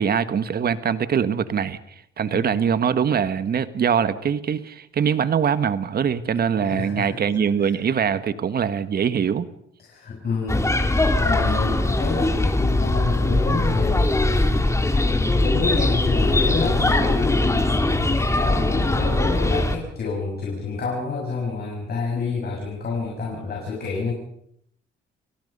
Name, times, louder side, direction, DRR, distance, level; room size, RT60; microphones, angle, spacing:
voice 1, 0.0-1.8 2.2-9.5, right 7 dB, 50° right, 12 dB, 1.5 m, -23 dB
voice 2, 6.6-7.2 7.6-7.7 9.8-10.7 11.2-14.6 15.4-24.1, left 4 dB, 50° left, -2 dB, 6.8 m, -28 dB
sound 1, 10.5-19.8, left 2 dB, 15° left, 2.7 m, -21 dB
29.5 x 18.0 x 5.5 m, 0.72 s
cardioid pair, 90°, 20 cm